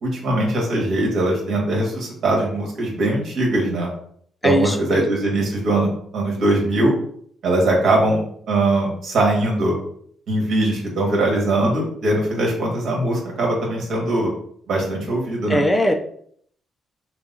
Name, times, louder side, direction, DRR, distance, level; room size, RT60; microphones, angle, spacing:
voice 1, 0.0-3.9 4.4-6.9 7.4-8.2 8.5-9.7 10.3-14.3 14.7-15.6, right 1 dB, 65° right, -1 dB, 1.7 m, -21 dB
voice 2, 4.4-5.0 15.5-15.9, equal, 10° left, 4 dB, 0.4 m, -19 dB
6.5 x 2.3 x 2.7 m, 0.62 s
cardioid pair, 125°, 0 cm